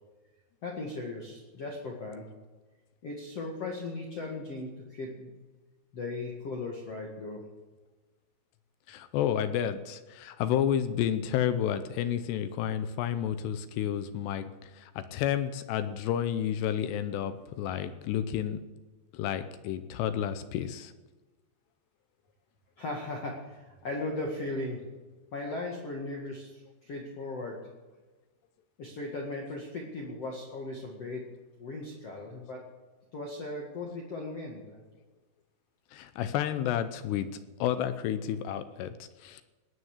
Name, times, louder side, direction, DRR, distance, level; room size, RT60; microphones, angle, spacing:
voice 1, 0.6-2.3 3.0-5.3 5.9-7.5 22.8-24.8 25.3-27.6 28.8-31.2 31.6-32.6 33.1-34.8, left 2 dB, 45° left, -1 dB, 2.3 m, -37 dB
voice 2, 8.9-18.6 19.1-20.9 35.9-37.3 37.6-39.4, left 10 dB, 80° left, 11 dB, 2.8 m, -31 dB
19.5 x 9.5 x 7.3 m, 1.2 s
omnidirectional pair, 5.0 m